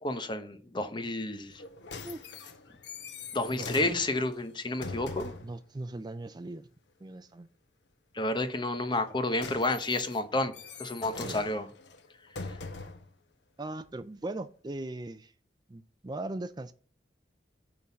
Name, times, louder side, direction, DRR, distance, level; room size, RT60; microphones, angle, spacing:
voice 1, 0.0-1.6 3.3-5.3 8.1-10.5 10.8-11.7, left 2 dB, 25° left, 1.0 m, -30 dB
sound 1, 1.5-5.6 8.9-13.1 13.8-13.9, left 4 dB, 90° left, 1.1 m, -43 dB
voice 2, 3.5-3.9 5.4-6.7 7.0-7.5 11.2-11.4 13.6-15.3 15.7-16.7, right 2 dB, 25° right, 0.4 m, -39 dB
9.7 x 3.9 x 7.2 m
head